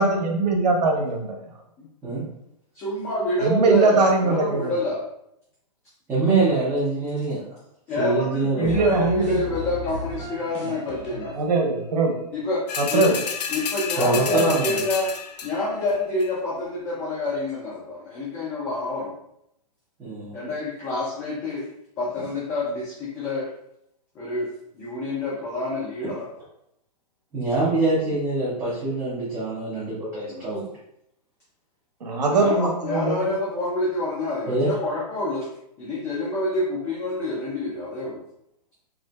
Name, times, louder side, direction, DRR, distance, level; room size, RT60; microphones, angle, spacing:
voice 1, 0.0-1.4 3.4-4.7 8.6-9.4 11.4-12.2 12.8-13.2 32.0-33.3, right 3 dB, 75° right, 2 dB, 0.8 m, -21 dB
voice 2, 2.7-5.0 7.9-11.4 12.3-12.6 12.9-13.1 13.5-15.1 15.4-19.1 20.3-21.7 22.0-23.5 24.1-26.3 30.3-30.5 32.3-35.5 35.8-38.2, left 2 dB, 10° left, -7 dB, 0.4 m, -27 dB
voice 3, 6.1-7.4 8.0-8.8 14.0-14.8 20.0-20.3 27.3-30.7 34.5-34.7, right 3 dB, 10° right, -11 dB, 0.7 m, -24 dB
sound 1, 8.6-11.9, left 2 dB, 45° left, 1.0 m, -35 dB
sound 2, 12.7-15.7 16.2-16.3, left 7 dB, 75° left, 0.5 m, -30 dB
3.7 x 2.5 x 2.2 m, 0.77 s
hypercardioid pair, 155°, 21 cm